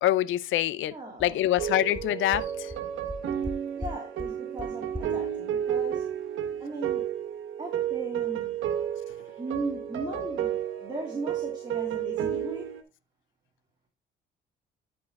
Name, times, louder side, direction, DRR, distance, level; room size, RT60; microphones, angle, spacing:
voice 1, 0.0-0.9 1.2-2.7, left 13 dB, 80° left, 0.6 m, -25 dB
sound 1, 0.8-0.9 1.2-1.3 1.6-1.7 1.9-2.0 2.3-2.4 2.7-2.8 3.1-3.5 3.8-3.9 4.2-4.3 4.6-4.7 4.9-5.0, left 1 dB, 5° right, 1.3 m, -37 dB
voice 2, 0.9-1.5 3.8-6.0 6.6-7.1 7.6-8.6 9.4-12.7, right 2 dB, 20° right, 2.7 m, -37 dB
sound 2, 1.6-12.8, right 9 dB, 80° right, 1.3 m, -32 dB
10.5 x 5.0 x 3.6 m
cardioid pair, 90°, 20 cm